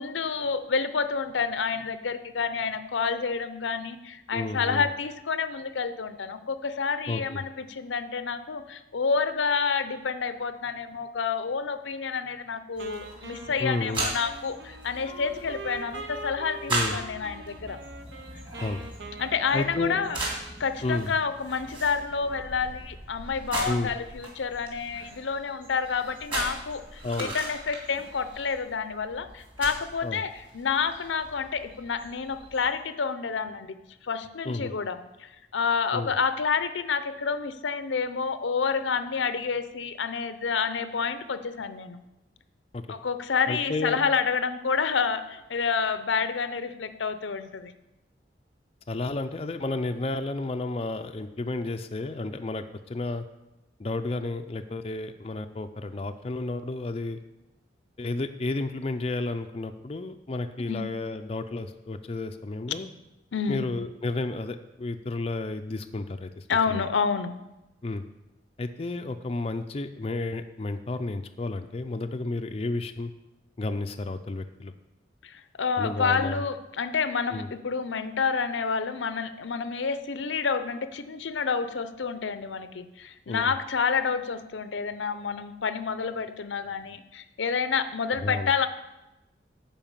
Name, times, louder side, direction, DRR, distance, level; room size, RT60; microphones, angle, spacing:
voice 1, 0.0-17.8 19.2-20.2 20.6-33.7 34.0-42.0 42.9-47.7 60.7-60.8 63.3-63.6 66.5-67.3 75.2-88.7, left 5 dB, 90° left, 11 dB, 0.6 m, -29 dB
voice 2, 4.3-4.9 7.1-7.4 13.6-14.1 16.7-17.0 18.6-18.8 19.5-20.0 20.8-21.1 23.7-23.9 27.0-27.3 30.0-30.2 34.4-34.7 35.9-36.1 42.7-43.0 43.5-44.0 48.9-53.3 53.8-57.2 58.0-62.9 63.5-66.9 67.8-68.0 68.6-73.1 73.6-74.7 75.8-76.4 77.3-77.5 83.3-83.5 88.2-88.5, left 2 dB, 30° left, 7 dB, 0.4 m, -32 dB
sound 1, 12.7-32.7, right 2 dB, 25° right, 2.4 m, -38 dB
Wind instrument woodwind instrument, 12.8-20.7, right 3 dB, 70° right, 1.1 m, -43 dB
11.0 x 4.7 x 7.3 m, 0.95 s
head